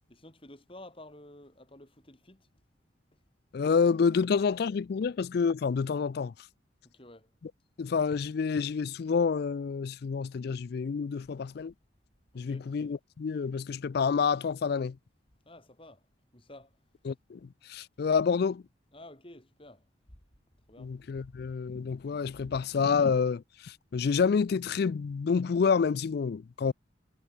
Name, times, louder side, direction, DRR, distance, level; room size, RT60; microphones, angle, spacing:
voice 1, 0.1-2.5 5.0-5.1 6.8-7.3 12.3-12.7 15.4-16.0 16.3-16.7 18.0-18.2 18.9-19.8 20.7-20.9 21.3-21.4, left 1 dB, 25° left, 4.9 m, -51 dB
voice 2, 3.5-6.3 7.8-11.7 12.3-15.0 17.1-18.6 20.8-26.7, left 5 dB, 55° left, 0.3 m, -28 dB
head